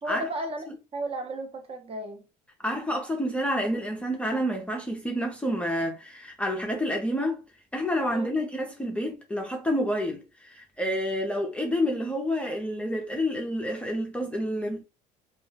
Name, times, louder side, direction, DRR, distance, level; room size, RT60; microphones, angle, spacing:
voice 1, 0.0-2.2 8.1-8.3, right 1 dB, 35° right, 0.8 m, -34 dB
voice 2, 2.6-7.4 7.7-14.8, equal, 5° left, 0.5 m, -29 dB
2.3 x 2.0 x 3.1 m
supercardioid pair, 100°, 18 cm